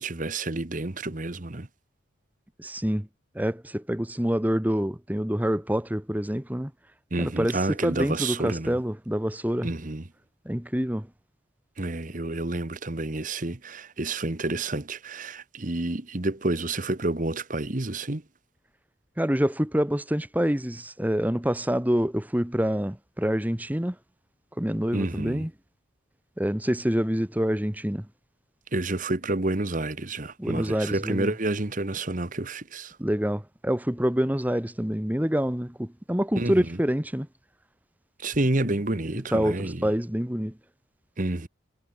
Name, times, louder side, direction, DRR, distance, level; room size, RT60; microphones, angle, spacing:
voice 1, 0.0-1.7 7.1-8.8 9.6-10.0 11.8-18.2 24.9-25.5 28.7-33.0 36.3-36.8 38.2-39.9 41.2-41.5, right 2 dB, 40° right, 1.2 m, -29 dB
voice 2, 2.6-3.1 3.3-6.7 7.2-9.7 10.4-11.1 19.2-23.9 24.6-25.5 26.4-28.1 30.4-31.3 33.0-37.3 39.3-40.5, equal, 10° right, 1.1 m, -26 dB
head